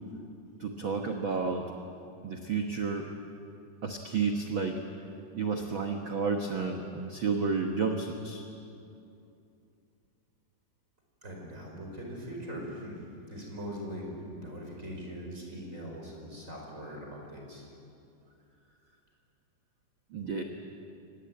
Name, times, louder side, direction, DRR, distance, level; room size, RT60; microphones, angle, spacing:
voice 1, 0.6-1.7 2.2-3.1 3.8-4.8 5.3-8.5 20.1-20.4, right 5 dB, 80° right, 3 dB, 1.1 m, -31 dB
voice 2, 11.2-13.0 13.3-17.7, equal, 20° right, 0 dB, 4.9 m, -41 dB
24.5 x 19.5 x 9.0 m, 2.6 s
omnidirectional pair, 4.3 m